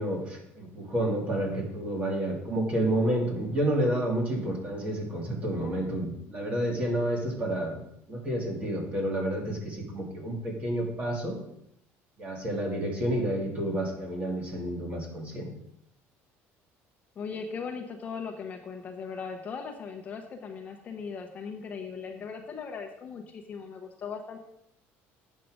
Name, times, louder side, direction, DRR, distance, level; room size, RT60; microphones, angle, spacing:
voice 1, 0.0-7.8 8.1-11.4 12.2-15.5, right 1 dB, 25° right, 1 dB, 2.1 m, -30 dB
voice 2, 17.2-24.4, left 5 dB, 30° left, 3 dB, 0.9 m, -38 dB
8.3 x 6.6 x 6.2 m, 0.75 s
cardioid pair, 165°, 5 cm